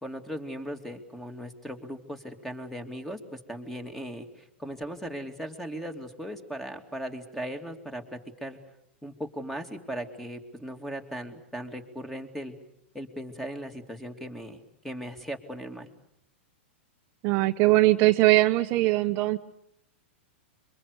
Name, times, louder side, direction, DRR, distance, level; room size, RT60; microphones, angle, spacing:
voice 1, 0.0-8.6 9.0-12.5 12.9-15.9, equal, 5° left, 7 dB, 2.7 m, -38 dB
voice 2, 17.2-19.4, right 18 dB, 40° right, 7 dB, 1.0 m, -21 dB
26.5 x 24.0 x 8.2 m, 0.76 s
hypercardioid pair, 125°, 7 cm